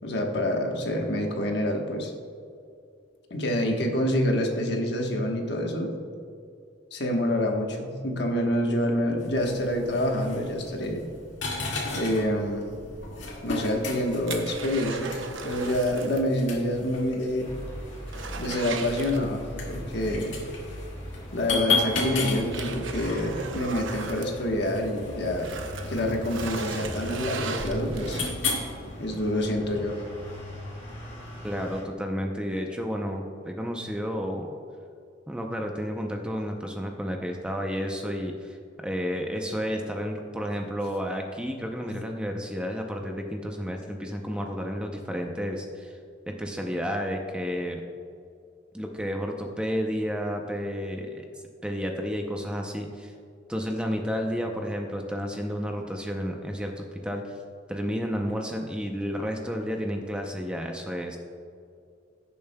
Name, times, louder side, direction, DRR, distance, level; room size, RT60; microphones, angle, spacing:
voice 1, 0.0-2.1 3.3-5.9 6.9-11.0 11.9-12.6 13.4-15.2 15.4-17.5 18.4-20.4 21.3-25.5 25.9-28.2 28.8-30.0, left 1 dB, 60° left, 2 dB, 1.2 m, -27 dB
sound 1, 9.2-28.6, left 3 dB, 75° left, 1.9 m, -35 dB
sound 2, 13.3-16.3 16.6-16.7 17.2-17.3 17.6-19.7 21.1-21.2 21.8-24.9 25.3-28.6 29.1-29.2, right 4 dB, 85° right, 0.8 m, -38 dB
sound 3, 17.4-31.8, equal, 35° left, 2.3 m, -40 dB
voice 2, 31.4-34.5 35.3-46.0 46.3-47.8 48.7-51.2 51.6-53.1 53.5-57.4 57.7-61.2, equal, 5° right, 2 dB, 0.6 m, -31 dB
16.0 x 6.9 x 2.2 m, 2.4 s
head